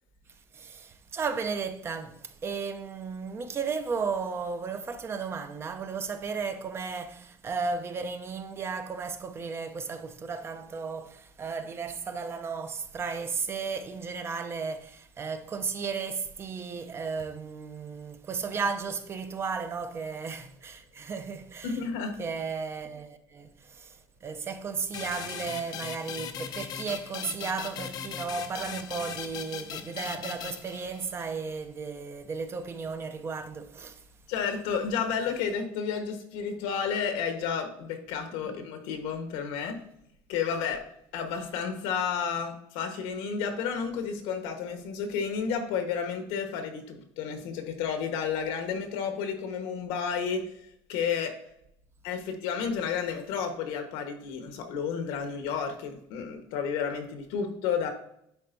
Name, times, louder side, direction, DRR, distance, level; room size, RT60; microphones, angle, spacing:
voice 1, 0.5-21.8 22.2-34.0 38.4-38.6, right 5 dB, 25° right, 0.5 m, -34 dB
voice 2, 21.6-22.2 34.3-39.8 40.3-40.8 41.1-50.6 50.9-51.3 52.0-57.9, left 6 dB, 85° left, 1.3 m, -31 dB
sound 1, 24.9-31.3, left 8 dB, 45° left, 0.5 m, -39 dB
10.5 x 4.3 x 2.7 m
cardioid pair, 145°, 9 cm